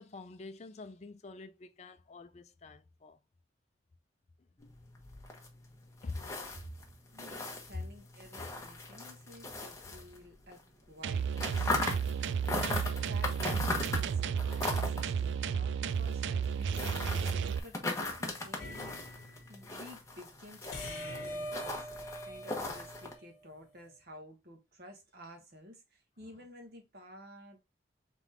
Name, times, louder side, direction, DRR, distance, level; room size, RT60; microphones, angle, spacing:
voice 1, 0.0-3.2 6.0-6.4 7.7-7.8 9.8-9.9, left 3 dB, 35° left, 0.4 m, -45 dB
sound 1, 4.6-10.6 10.9-23.1, left 2 dB, 15° left, 0.9 m, -39 dB
voice 2, 7.1-12.6 13.0-27.6, equal, 55° right, 1.3 m, -53 dB
sound 2, 11.0-17.6, right 7 dB, 75° right, 0.3 m, -33 dB
sound 3, 18.6-19.5 20.7-23.5, equal, 55° left, 1.3 m, -43 dB
3.7 x 3.6 x 3.3 m
head